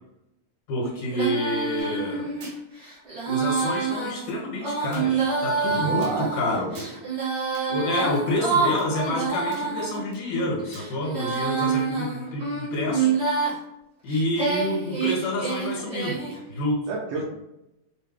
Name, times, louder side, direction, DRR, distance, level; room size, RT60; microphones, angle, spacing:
voice 1, 0.7-2.3 3.3-6.9 7.7-13.1 14.0-16.2 16.5-16.9, left 1 dB, 70° left, -3 dB, 2.7 m, -28 dB
Female singing, 1.1-10.0 10.6-13.6 14.1-16.4, right 5 dB, 35° right, 1.1 m, -27 dB
sound 1, 1.8-2.0 2.4-2.6 3.6-3.7 4.9-5.1 6.0-6.2 6.7-7.0 7.5-7.7 8.2-8.3 8.8-8.9 9.5-9.8 10.1-10.4 10.7-10.9 11.3-11.4 11.8-11.9, right 3 dB, 90° right, 2.7 m, -46 dB
voice 2, 5.8-6.8 16.9-17.2, right 3 dB, 75° right, -3 dB, 1.6 m, -31 dB
6.5 x 2.2 x 3.3 m, 0.90 s
omnidirectional pair, 3.5 m